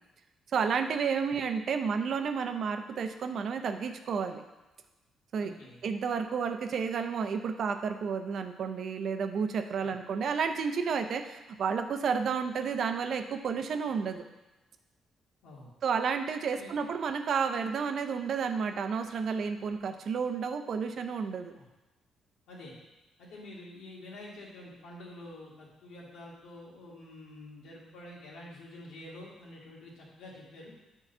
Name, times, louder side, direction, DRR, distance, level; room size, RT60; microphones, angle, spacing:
voice 1, 0.5-4.4 5.3-5.5 5.8-14.2 15.8-21.6, right 6 dB, 60° right, 7 dB, 0.6 m, -31 dB
voice 2, 5.4-5.8 9.8-9.9 15.4-15.7 16.5-16.9 21.5-21.7 22.5-22.7 23.2-30.7, left 1 dB, 85° left, -5 dB, 2.2 m, -48 dB
7.3 x 3.9 x 5.5 m, 1.0 s
cardioid pair, 90°, 0 cm